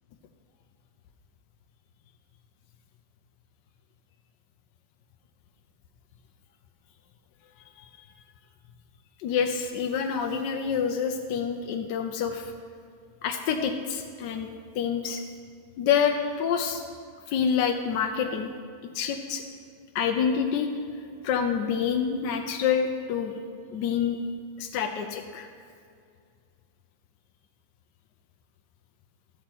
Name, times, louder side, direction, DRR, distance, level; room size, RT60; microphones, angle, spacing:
voice 1, 9.2-12.5 13.2-14.5 14.7-15.2 15.8-16.8 17.3-18.5 18.9-19.4 19.9-20.7 21.2-23.3 23.7-24.2 24.6-25.5, left 7 dB, 70° left, 4 dB, 1.2 m, -27 dB
13.0 x 4.3 x 7.7 m, 2.3 s
omnidirectional pair, 2.0 m